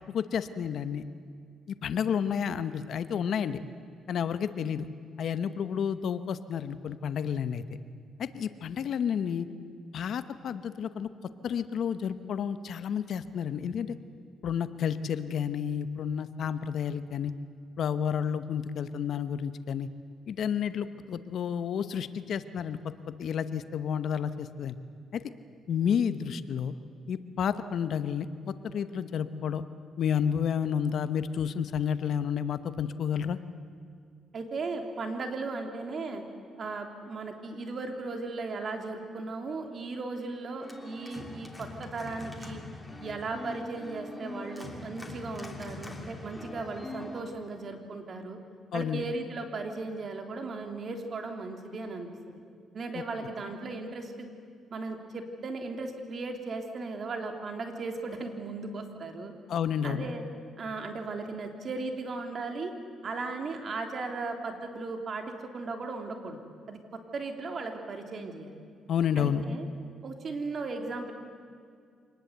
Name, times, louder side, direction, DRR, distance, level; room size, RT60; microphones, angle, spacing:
voice 1, 0.1-1.0 1.8-3.6 4.1-4.9 5.2-7.6 8.2-9.5 9.9-11.1 11.4-14.0 14.4-17.3 17.8-19.9 20.3-22.8 23.2-24.8 25.1-25.2 25.7-26.7 27.1-29.6 30.0-33.4 48.7-49.0 59.5-60.1 68.9-69.4, left 8 dB, 65° left, 12 dB, 1.0 m, -30 dB
voice 2, 34.3-36.2 36.6-42.6 43.0-48.4 48.7-52.4 52.7-54.3 54.7-59.3 59.8-60.2 60.6-62.7 63.0-65.2 65.5-66.4 66.7-66.8 67.1-68.6 69.2-69.7 70.0-71.1, right 3 dB, 50° right, 4 dB, 3.2 m, -36 dB
Organ, 40.6-47.2, left 1 dB, 10° left, 3.0 m, -42 dB
25.5 x 19.5 x 8.2 m, 2.2 s
cardioid pair, 90°, 0 cm